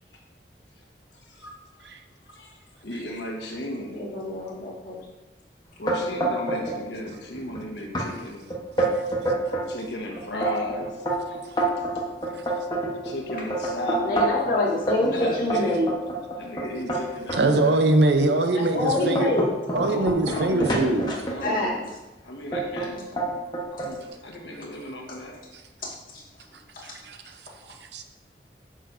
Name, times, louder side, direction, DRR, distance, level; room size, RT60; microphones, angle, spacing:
voice 1, 2.8-4.0 5.8-8.5 9.1-9.2 9.6-11.4 13.0-14.3 15.0-15.8 16.3-17.8 19.7-21.9 22.2-23.1 23.7-25.4, left 1 dB, 85° left, 0 dB, 1.3 m, -35 dB
voice 2, 3.9-5.0 13.3-13.4 14.0-15.9 18.5-19.5 21.4-22.0 24.1-24.2 25.8-26.2 26.7-26.9, left 2 dB, 50° left, -5 dB, 2.0 m, -26 dB
sound 1, 5.9-6.8 7.1-7.6 7.9-8.1 8.5-9.7 10.2-14.5 14.9-17.4 18.0-18.2 18.7-21.7 22.5-22.9 23.2-23.9, right 2 dB, 25° left, 1.2 m, -27 dB
voice 3, 17.3-19.3 19.7-21.1 27.1-27.2 27.9-28.0, right 2 dB, 80° right, 6 dB, 0.7 m, -22 dB
9.0 x 6.4 x 2.7 m, 1.1 s
head